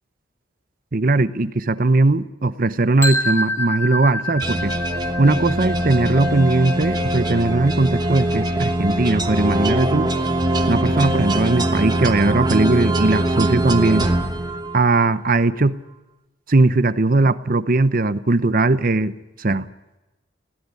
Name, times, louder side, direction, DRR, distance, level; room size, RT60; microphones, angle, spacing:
voice 1, 0.9-4.7 5.2-10.1 10.7-14.1 14.7-15.8 16.5-19.1 19.4-19.6, right 2 dB, 45° right, 13 dB, 0.8 m, -19 dB
sound 1, 3.0-8.9, left 1 dB, 15° left, 3.5 m, -28 dB
sound 2, 4.4-15.1, right 1 dB, 20° right, 1.1 m, -22 dB
20.0 x 17.0 x 9.8 m, 1.0 s
head